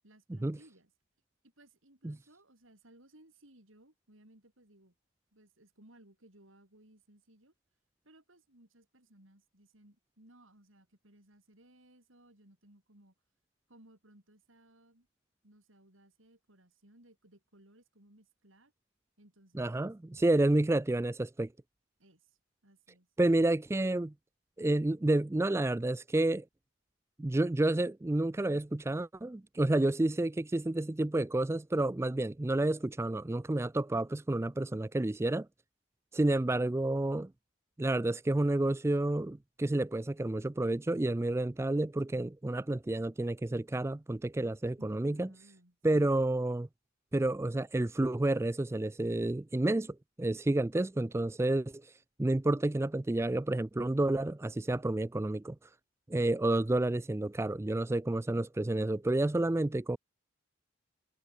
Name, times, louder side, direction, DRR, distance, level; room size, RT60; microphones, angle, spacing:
voice 1, 0.0-0.9 1.4-4.9 5.3-7.5 8.0-13.1 13.7-15.1 15.4-18.7 19.2-19.9 22.0-23.1 44.8-46.1, right 1 dB, 80° right, 6.0 m, -61 dB
voice 2, 19.5-21.5 23.2-24.1 24.6-26.4 27.2-35.5 36.1-37.3 37.8-45.3 45.8-46.7 47.1-51.9 52.2-55.6 56.1-60.0, right 2 dB, 15° right, 0.3 m, -30 dB
head